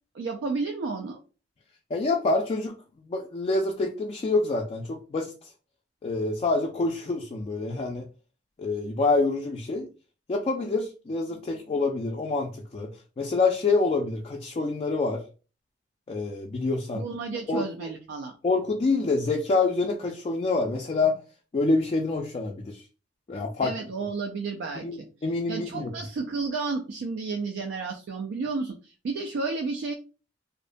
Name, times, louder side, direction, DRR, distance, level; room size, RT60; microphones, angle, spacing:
voice 1, 0.1-1.2 16.9-18.4 23.6-25.1 25.5-29.9, right 4 dB, 80° right, 3 dB, 0.3 m, -32 dB
voice 2, 1.9-2.8 3.1-5.3 6.0-8.1 8.6-9.9 10.3-12.9 13.2-15.2 16.1-17.0 17.5-17.9 18.4-21.1 21.5-22.8 23.3-23.7 24.8-25.9, left 3 dB, 35° left, 1 dB, 0.3 m, -26 dB
2.5 x 2.1 x 2.5 m, 0.35 s
head